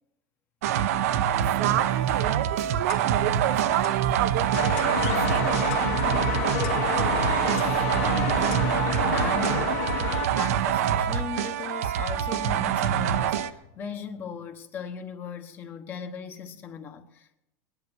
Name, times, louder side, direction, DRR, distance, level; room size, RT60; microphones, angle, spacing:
sound 1, 0.6-13.5, right 10 dB, 85° right, 0.8 m, -25 dB
voice 1, 1.3-5.7, right 13 dB, 55° right, 0.6 m, -30 dB
Clock, 2.9-3.3 3.8-4.0 4.8-5.0 5.7-6.0 6.6-6.9 7.6-7.8 8.5-8.8 9.4-9.7, left 11 dB, 50° left, 1.4 m, -45 dB
sound 2, 4.5-10.3, left 9 dB, 85° left, 2.0 m, -29 dB
voice 2, 7.0-8.7 9.1-9.9 10.3-17.4, left 6 dB, 25° left, 1.2 m, -38 dB
19.0 x 11.0 x 6.2 m
supercardioid pair, 165°, 8 cm